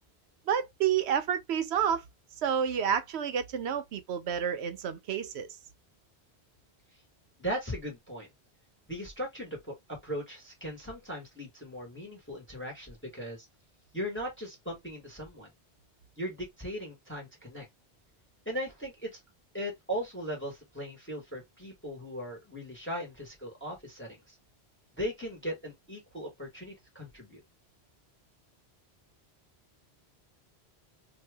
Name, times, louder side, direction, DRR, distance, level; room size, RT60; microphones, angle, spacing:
voice 1, 0.5-2.0 2.4-5.5, right 8 dB, 80° right, 0.9 m, -29 dB
voice 2, 7.4-8.3 8.9-13.5 13.9-15.5 16.2-17.7 18.4-19.2 19.5-24.3 25.0-27.4, equal, 10° left, 1.2 m, -38 dB
2.8 x 2.4 x 3.3 m
omnidirectional pair, 1.1 m